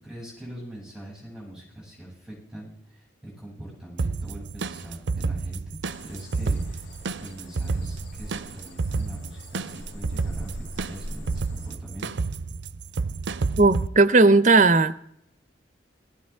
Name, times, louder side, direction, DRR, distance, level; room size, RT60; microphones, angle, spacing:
voice 1, 0.0-12.2, right 1 dB, 5° right, -3 dB, 7.4 m, -42 dB
sound 1, 4.0-13.9, right 4 dB, 80° right, 0.6 m, -30 dB
sound 2, 5.9-11.8, equal, 85° left, 2.1 m, -42 dB
voice 2, 13.6-14.9, right 3 dB, 40° right, 12 dB, 0.7 m, -16 dB
18.0 x 14.5 x 3.6 m, 0.73 s
head